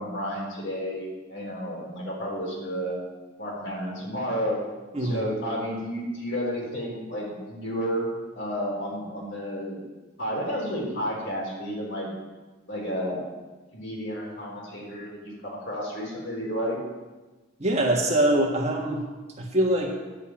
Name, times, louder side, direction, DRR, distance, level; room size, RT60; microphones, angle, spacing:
voice 1, 0.0-3.0 3.4-4.6 5.0-8.1 8.3-9.8 10.2-12.1 12.7-13.3 13.7-16.8, equal, 55° left, -3 dB, 4.0 m, -31 dB
voice 2, 4.9-5.3 17.6-19.0 19.4-19.9, right 1 dB, 30° right, -1 dB, 1.6 m, -23 dB
10.5 x 7.0 x 8.6 m, 1.2 s
head